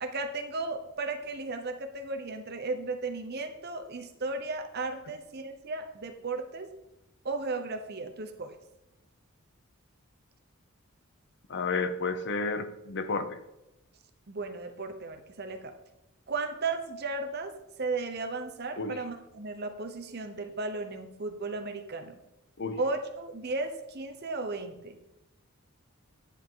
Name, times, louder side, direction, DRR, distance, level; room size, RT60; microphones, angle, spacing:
voice 1, 0.0-6.7 7.2-8.5 14.3-15.7 16.3-17.5 17.8-22.2 22.8-25.0, right 3 dB, 50° right, 6 dB, 0.9 m, -35 dB
voice 2, 11.5-13.4 18.8-19.0 22.6-22.8, left 4 dB, 55° left, 10 dB, 0.8 m, -31 dB
9.9 x 7.3 x 3.8 m, 0.93 s
head